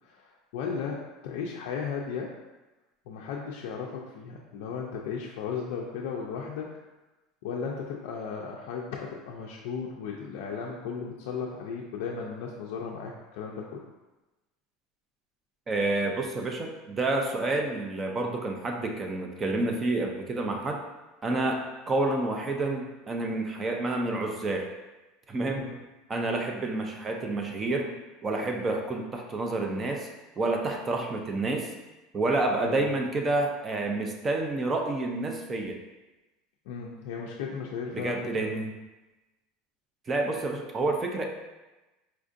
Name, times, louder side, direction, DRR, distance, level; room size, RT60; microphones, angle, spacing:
voice 1, 0.0-2.3 3.1-6.7 7.4-13.8 25.6-25.8 32.6-32.9 36.7-38.5, left 6 dB, 70° left, -2 dB, 0.3 m, -35 dB
voice 2, 15.7-20.8 21.2-24.7 25.3-25.7 26.1-27.9 28.2-30.1 30.4-31.7 32.1-35.8 37.9-38.7 40.1-41.3, right 2 dB, 15° right, 3 dB, 0.3 m, -29 dB
4.3 x 2.5 x 2.5 m, 1.1 s
cardioid pair, 175°, 0 cm